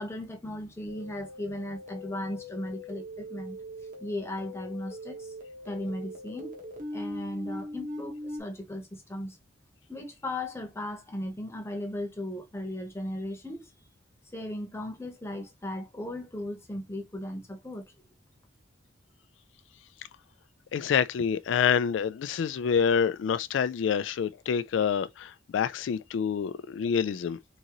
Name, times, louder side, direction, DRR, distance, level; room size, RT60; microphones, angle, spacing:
voice 1, 0.0-3.6 4.0-5.3 5.7-6.5 6.9-9.4 9.9-13.7 14.3-17.9, left 1 dB, 15° left, 1.0 m, -37 dB
sound 1, 0.9-8.4, left 1 dB, 45° right, 1.3 m, -41 dB
voice 2, 20.7-27.4, left 7 dB, 80° left, 0.3 m, -27 dB
3.9 x 3.7 x 3.0 m
head